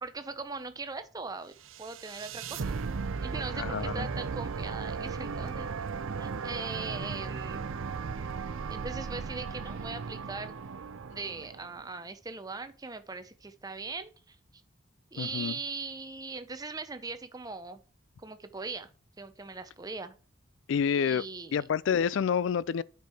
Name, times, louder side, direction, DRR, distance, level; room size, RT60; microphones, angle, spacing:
voice 1, 0.0-2.8 3.2-5.7 6.2-7.7 8.7-10.6 11.1-14.4 15.1-17.8 18.2-18.9 19.2-20.2 21.0-21.6, right 4 dB, 20° right, 0.6 m, -40 dB
sound 1, 1.7-11.9, right 5 dB, 80° right, 0.6 m, -36 dB
voice 2, 3.6-4.1 15.2-15.5 20.7-21.2 21.5-22.8, left 7 dB, 65° left, 0.3 m, -28 dB
9.3 x 4.5 x 4.8 m
head